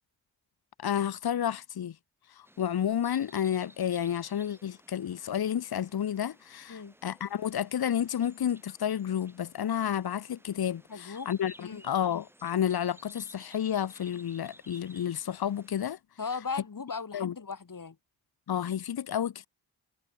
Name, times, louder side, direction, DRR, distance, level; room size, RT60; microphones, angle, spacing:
voice 1, 0.8-1.9 2.4-16.0 17.1-17.3 18.5-19.5, left 9 dB, 70° left, 1.0 m, -31 dB
sound 1, 2.4-15.8, equal, 5° right, 7.4 m, -57 dB
voice 2, 10.9-11.3 11.6-11.8 16.2-18.0, left 5 dB, 55° left, 4.1 m, -37 dB
cardioid pair, 50°, 38 cm